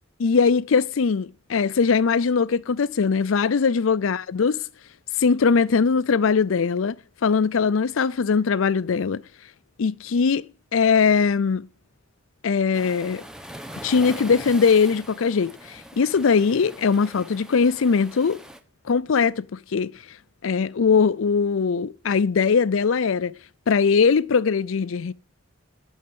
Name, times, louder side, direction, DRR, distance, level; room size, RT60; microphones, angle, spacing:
voice 1, 0.2-4.6 5.2-7.0 7.2-9.2 9.8-10.4 10.7-11.7 12.4-13.2 13.8-18.4 18.9-19.9 20.4-23.3 23.7-25.1, left 5 dB, 85° left, 0.5 m, -21 dB
Waves surf, 12.7-18.6, equal, 5° right, 0.9 m, -41 dB
8.8 x 6.4 x 7.6 m
head